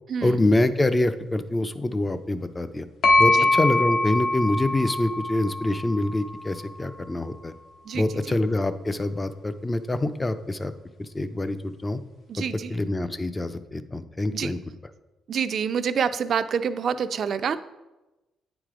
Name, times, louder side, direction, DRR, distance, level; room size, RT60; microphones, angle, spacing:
voice 1, 0.2-2.9 3.2-7.5 7.9-10.7 11.0-12.0 12.7-14.6, left 2 dB, 20° left, 11 dB, 0.5 m, -25 dB
sound 1, 3.0-6.8, left 2 dB, 65° left, 1.0 m, -23 dB
voice 2, 12.3-12.7 14.3-14.5 15.3-17.6, right 7 dB, 55° right, 12 dB, 0.4 m, -27 dB
9.0 x 4.9 x 3.7 m, 1.1 s
cardioid pair, 90°, 0 cm